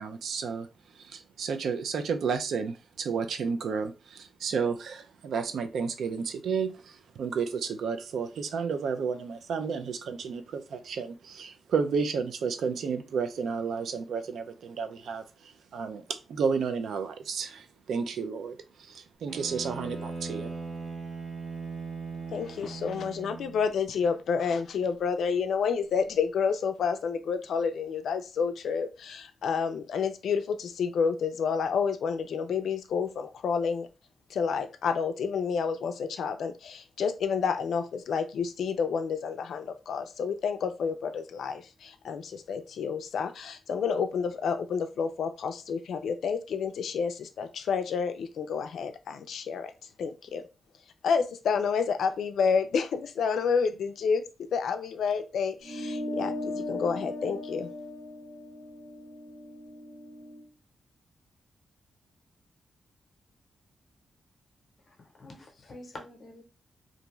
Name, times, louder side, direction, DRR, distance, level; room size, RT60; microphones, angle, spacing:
voice 1, 0.0-20.5, right 5 dB, 80° right, 8 dB, 0.3 m, -32 dB
Bowed string instrument, 19.3-23.7, right 4 dB, 25° right, 0.6 m, -39 dB
voice 2, 22.3-33.9 34.3-49.7 50.0-50.4 51.0-57.7, left 6 dB, 80° left, 8 dB, 0.3 m, -29 dB
sound 1, 55.6-60.4, left 1 dB, 45° right, 1.5 m, -37 dB
voice 3, 64.9-66.4, left 2 dB, 40° left, 2 dB, 0.7 m, -47 dB
2.5 x 2.3 x 3.0 m, 0.30 s
wide cardioid pair, 165°, 0 cm